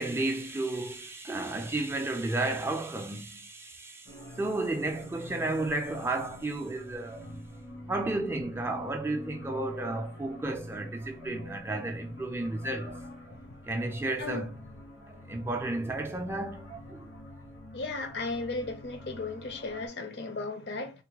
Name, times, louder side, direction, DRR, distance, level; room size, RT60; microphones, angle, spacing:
voice 1, 0.0-7.3 7.9-12.9 13.7-14.6 15.1-17.1, right 2 dB, 15° right, 0.3 m, -33 dB
sound 1, 4.1-19.9, equal, 85° left, 1.3 m, -45 dB
voice 2, 17.7-20.9, left 3 dB, 55° left, 0.5 m, -35 dB
3.6 x 2.1 x 2.9 m
head